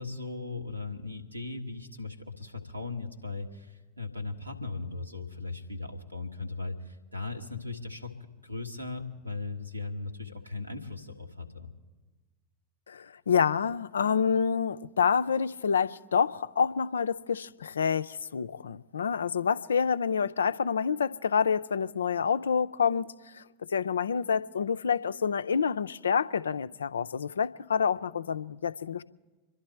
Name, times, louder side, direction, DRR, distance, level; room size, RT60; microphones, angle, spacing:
voice 1, 0.0-8.1 8.4-11.7, left 3 dB, 90° right, 1.6 m, -38 dB
voice 2, 12.9-23.4 23.7-29.0, left 6 dB, 70° left, 0.4 m, -28 dB
26.5 x 11.5 x 4.4 m
figure-of-eight pair, 90°, 0 cm